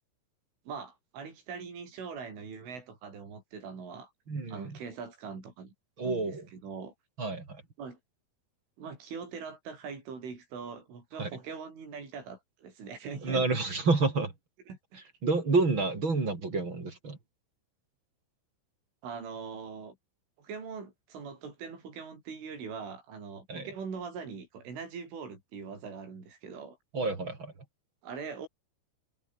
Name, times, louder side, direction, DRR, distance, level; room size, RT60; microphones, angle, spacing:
voice 1, 0.7-4.1 4.5-5.7 6.0-6.9 7.8-8.0 8.8-13.5 14.7-15.0 19.0-20.0 20.4-26.8 28.0-28.5, right 5 dB, 75° right, 9.5 m, -42 dB
voice 2, 4.3-4.8 6.0-6.5 7.2-7.6 11.2-11.3 13.2-14.3 15.2-17.2 23.5-23.7 26.9-27.5, right 3 dB, 25° right, 4.1 m, -29 dB
omnidirectional pair, 5.6 m